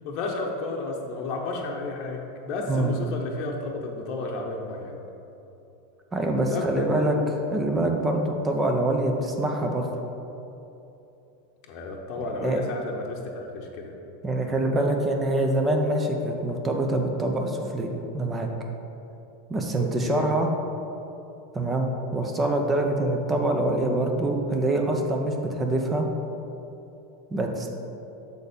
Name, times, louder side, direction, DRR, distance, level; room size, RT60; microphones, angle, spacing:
voice 1, 0.0-5.0 6.5-7.1 11.7-13.9 19.8-20.2, left 3 dB, 50° left, 0 dB, 0.8 m, -32 dB
voice 2, 2.7-3.0 6.1-7.2 7.5-9.9 12.2-12.6 14.2-18.5 19.5-20.5 21.5-26.1 27.3-27.7, right 1 dB, 20° right, 3 dB, 0.7 m, -25 dB
6.7 x 4.2 x 5.1 m, 2.9 s
hypercardioid pair, 105°, 0 cm